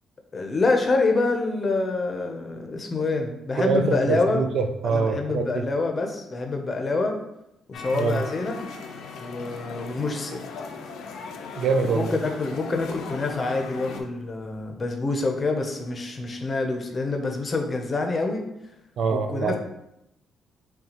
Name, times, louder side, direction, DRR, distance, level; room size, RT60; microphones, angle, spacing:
voice 1, 0.3-4.4 4.8-7.2 7.7-8.7 9.2-10.4 11.9-18.5 19.1-19.6, left 3 dB, 35° left, 3 dB, 0.6 m, -26 dB
voice 2, 3.6-5.7 7.9-8.2 11.6-12.1 19.0-19.6, right 5 dB, 65° right, 7 dB, 0.4 m, -24 dB
sound 1, 7.7-14.0, left 5 dB, 80° left, 0.4 m, -38 dB
5.5 x 2.3 x 2.9 m, 0.86 s
cardioid pair, 90°, 0 cm